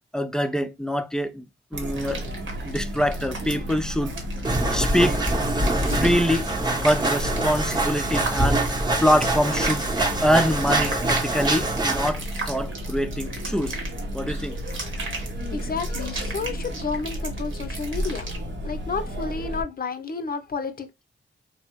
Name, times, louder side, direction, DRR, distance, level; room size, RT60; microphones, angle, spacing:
voice 1, 0.1-1.4 1.7-2.2 2.6-4.1 4.7-5.2 5.9-8.6 9.0-9.8 10.2-13.8 14.1-14.6, equal, 5° left, 0.4 m, -24 dB
Chatter, 1.7-19.6, equal, 70° right, 0.8 m, -33 dB
sound 1, 1.9-18.4, right 3 dB, 85° right, 1.1 m, -37 dB
sound 2, 4.5-12.1, right 2 dB, 20° right, 0.8 m, -25 dB
voice 2, 15.5-18.3 18.6-20.9, left 5 dB, 50° left, 0.6 m, -31 dB
3.4 x 2.0 x 2.8 m
cardioid pair, 50°, 20 cm